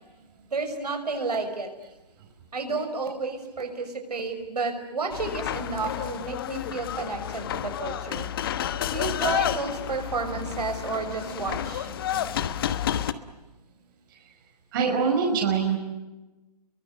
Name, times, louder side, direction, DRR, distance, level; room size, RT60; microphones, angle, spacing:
voice 1, 0.5-1.7 2.5-8.3 8.9-11.9, right 4 dB, 75° right, 5 dB, 5.9 m, -31 dB
sound 1, 5.1-13.1, left 10 dB, 35° left, 1.2 m, -30 dB
voice 2, 10.9-11.7 12.1-12.3 14.7-15.8, right 5 dB, 30° right, 2 dB, 5.0 m, -26 dB
30.0 x 23.5 x 8.0 m, 1.1 s
hypercardioid pair, 150°, 21 cm